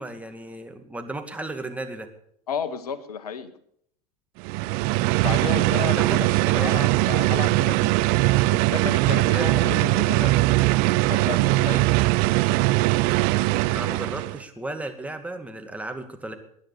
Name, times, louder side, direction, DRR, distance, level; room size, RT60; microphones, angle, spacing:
voice 1, 0.0-2.1 6.0-6.9 9.3-9.5 13.7-16.4, right 2 dB, 5° right, 5 dB, 2.2 m, -34 dB
voice 2, 2.5-3.5 5.2-8.0 8.5-10.4 11.1-11.9, left 7 dB, 75° left, 15 dB, 1.2 m, -32 dB
sound 1, 4.4-14.4, right 19 dB, 50° right, 0.6 m, -21 dB
20.5 x 10.0 x 6.8 m, 0.68 s
figure-of-eight pair, 80°, 20 cm